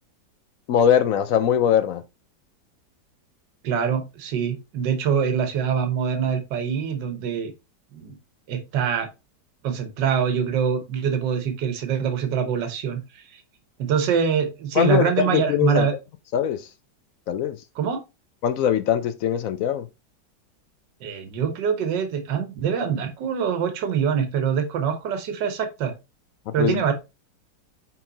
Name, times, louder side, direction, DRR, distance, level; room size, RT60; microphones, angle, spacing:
voice 1, 0.7-2.0 14.8-15.9 16.3-16.7 17.3-17.6 18.4-19.9 26.5-26.8, left 9 dB, 75° left, 0.7 m, -21 dB
voice 2, 3.6-7.5 7.9-8.2 8.5-9.1 9.6-13.4 13.8-15.9 17.7-18.0 21.0-25.9 26.5-26.9, right 7 dB, 80° right, 1.6 m, -24 dB
5.5 x 4.6 x 3.9 m
omnidirectional pair, 1.9 m